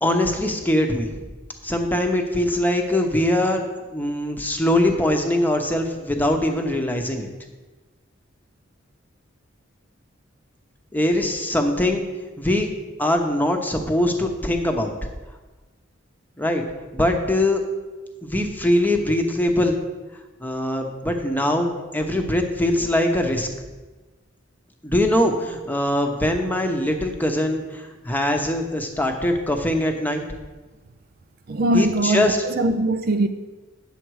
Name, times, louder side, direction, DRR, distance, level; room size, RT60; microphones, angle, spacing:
voice 1, 0.0-1.2 1.6-7.3 10.9-12.0 12.4-12.7 13.0-14.9 16.4-16.6 16.9-17.6 18.2-19.8 20.4-23.5 24.8-30.2 31.7-32.4, left 1 dB, 10° left, 0.9 m, -22 dB
voice 2, 31.5-33.3, right 1 dB, 50° right, 0.5 m, -21 dB
9.0 x 7.1 x 4.8 m
head